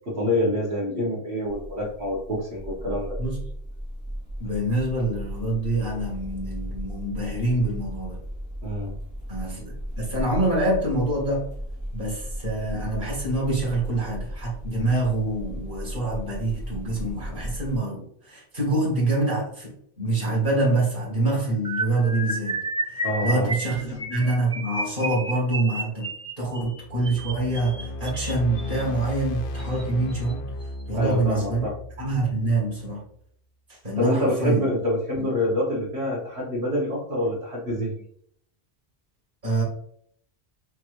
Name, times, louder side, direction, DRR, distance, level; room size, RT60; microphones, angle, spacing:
voice 1, 0.1-3.1 8.6-8.9 23.0-23.5 23.9-24.0 30.9-31.7 34.0-37.9, left 1 dB, 75° right, -9 dB, 1.8 m, -26 dB
sound 1, 1.4-17.8, equal, 20° left, 1.0 m, -36 dB
voice 2, 4.4-8.2 9.3-11.5 11.9-22.6 23.2-26.1 26.4-30.4 30.9-31.7 32.0-33.0 33.8-34.7 35.2-35.3 39.4-39.6, right 2 dB, 55° right, -4 dB, 2.2 m, -26 dB
sound 2, 21.6-28.8 29.6-29.8 30.1-30.3 30.6-30.8, right 2 dB, 5° right, 0.5 m, -32 dB
sound 3, 26.8-33.0, left 1 dB, 60° left, 0.7 m, -35 dB
5.7 x 3.0 x 2.7 m, 0.65 s
omnidirectional pair, 1.1 m